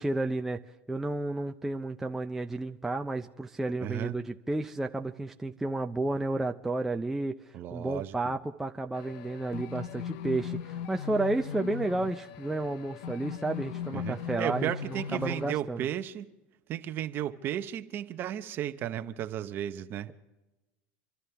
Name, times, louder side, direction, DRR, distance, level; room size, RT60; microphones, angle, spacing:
voice 1, 0.0-15.9, right 2 dB, 5° right, 0.5 m, -32 dB
voice 2, 3.8-4.2 7.5-8.3 13.9-16.3 16.7-20.1, right 11 dB, 35° right, 0.9 m, -34 dB
sound 1, 8.9-15.5, left 8 dB, 65° left, 0.7 m, -39 dB
26.5 x 12.5 x 3.4 m
supercardioid pair, 145°, 6 cm